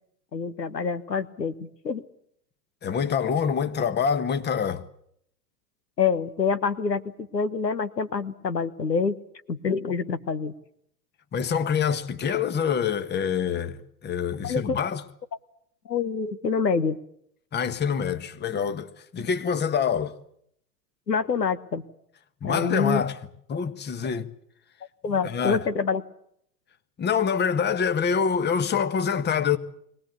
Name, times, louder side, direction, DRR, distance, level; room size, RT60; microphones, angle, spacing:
voice 1, 0.3-2.0 6.0-9.2 9.5-10.5 14.4-14.8 15.8-17.0 21.1-21.8 22.4-23.0 25.0-26.0, left 5 dB, 90° left, 1.4 m, -26 dB
voice 2, 2.8-4.8 11.3-15.0 17.5-18.9 19.1-20.1 22.4-23.2 23.5-24.3 25.1-25.6 27.0-29.6, left 7 dB, 20° left, 1.5 m, -26 dB
23.0 x 19.0 x 8.4 m
hypercardioid pair, 100°, 48 cm